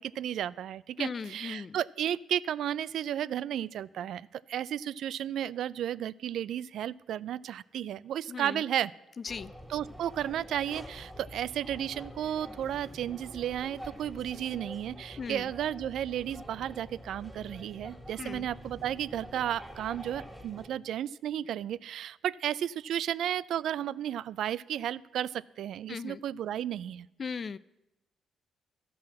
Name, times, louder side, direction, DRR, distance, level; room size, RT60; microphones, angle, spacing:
voice 1, 0.0-8.9 9.7-27.1, right 10 dB, 75° right, 19 dB, 0.3 m, -33 dB
voice 2, 1.0-1.8 8.3-8.6 9.2-9.5 15.2-15.5 18.2-18.5 25.9-26.2 27.2-27.6, left 5 dB, 40° left, 18 dB, 0.3 m, -38 dB
sound 1, 9.3-20.7, equal, ahead, 1.8 m, -47 dB
12.5 x 5.7 x 7.5 m, 0.93 s
cardioid pair, 90°, 0 cm